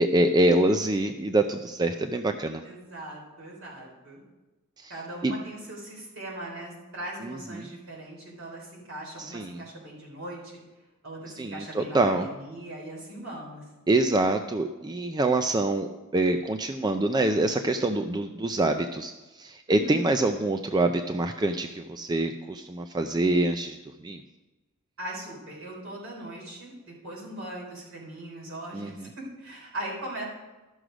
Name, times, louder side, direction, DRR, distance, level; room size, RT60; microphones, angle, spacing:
voice 1, 0.0-2.6 4.8-4.9 5.2-5.3 7.2-7.7 9.2-9.6 11.4-12.3 13.9-19.1 19.4-23.8 24.0-24.2 28.7-29.1, right 2 dB, 20° right, 7 dB, 0.4 m, -25 dB
voice 2, 2.6-4.2 4.9-10.4 11.0-13.6 19.7-20.0 25.0-30.3, right 1 dB, 65° right, -3 dB, 3.8 m, -40 dB
13.0 x 6.4 x 5.0 m, 1.1 s
head